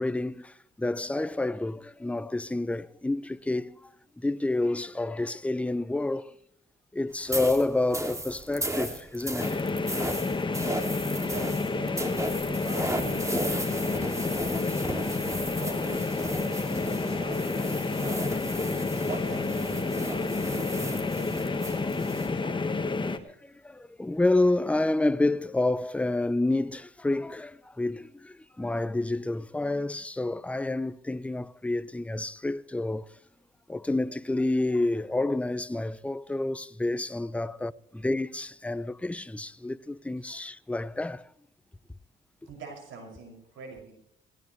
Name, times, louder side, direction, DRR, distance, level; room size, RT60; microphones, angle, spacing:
voice 1, 0.0-3.9 4.2-6.3 6.9-9.7 15.0-15.1 23.3-33.1 33.7-41.3, left 2 dB, 5° left, 0.6 m, -29 dB
sound 1, 7.3-22.3, right 1 dB, 15° right, 2.4 m, -35 dB
sound 2, 9.4-23.2, left 3 dB, 25° left, 1.5 m, -30 dB
voice 2, 11.3-18.5 19.0-22.8 40.2-40.3 42.4-43.9, right 3 dB, 75° right, 6.4 m, -45 dB
18.0 x 18.0 x 3.2 m
cardioid pair, 90°, 20 cm